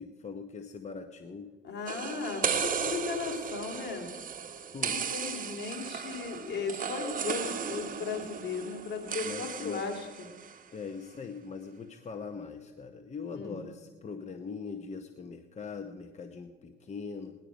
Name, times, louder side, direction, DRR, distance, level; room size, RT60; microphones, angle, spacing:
voice 1, 0.0-1.5 4.7-5.0 9.2-9.9 10.7-17.3, left 5 dB, 35° left, 6 dB, 0.8 m, -41 dB
voice 2, 1.6-4.1 4.8-10.3 13.3-13.6, left 5 dB, 60° left, 3 dB, 2.5 m, -36 dB
sound 1, 1.9-10.6, right 7 dB, 45° right, 1.1 m, -35 dB
18.0 x 11.0 x 5.1 m, 1.4 s
cardioid pair, 90°, 20 cm